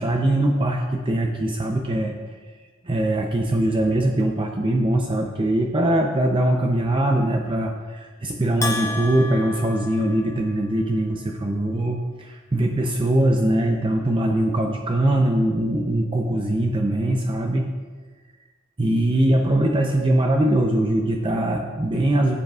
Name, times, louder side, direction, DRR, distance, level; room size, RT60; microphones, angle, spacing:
voice 1, 0.0-2.4 2.8-17.7 18.8-22.4, right 1 dB, 25° right, 2 dB, 0.6 m, -22 dB
Bell, 8.6-10.8, left 3 dB, 15° left, 0.5 m, -31 dB
15.0 x 8.0 x 2.4 m, 1.5 s
head